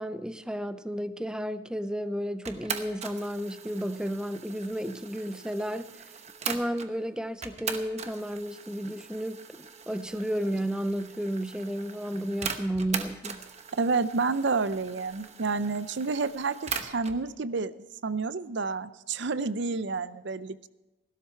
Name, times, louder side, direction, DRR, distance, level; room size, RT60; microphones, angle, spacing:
voice 1, 0.0-5.9 6.4-13.4, equal, 5° right, 0.5 m, -32 dB
sound 1, 2.5-6.9 7.4-17.2, right 6 dB, 35° right, 1.0 m, -40 dB
voice 2, 13.7-20.7, right 4 dB, 60° right, 0.6 m, -30 dB
16.5 x 12.5 x 4.5 m
head